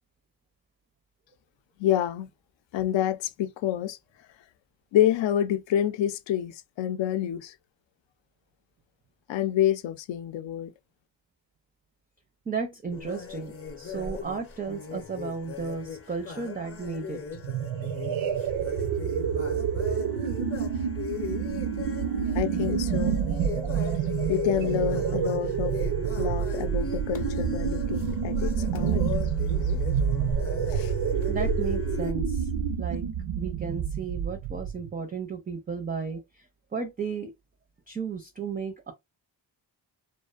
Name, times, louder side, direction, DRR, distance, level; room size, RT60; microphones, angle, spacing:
voice 1, 1.8-2.3 2.7-4.0 4.9-7.5 9.3-10.7 22.3-23.2 24.3-25.7 26.2-29.1 30.7-30.9, left 11 dB, 75° left, 0.5 m, -27 dB
voice 2, 12.5-17.2 31.3-32.5 32.8-33.0 33.4-36.5 36.7-37.3 37.9-38.9, right 5 dB, 20° right, 0.4 m, -34 dB
sound 1, 12.9-32.1, left 5 dB, 30° left, 0.7 m, -39 dB
sound 2, 17.3-34.9, right 7 dB, 85° right, 0.6 m, -28 dB
2.5 x 2.1 x 2.3 m
cardioid pair, 65°, 46 cm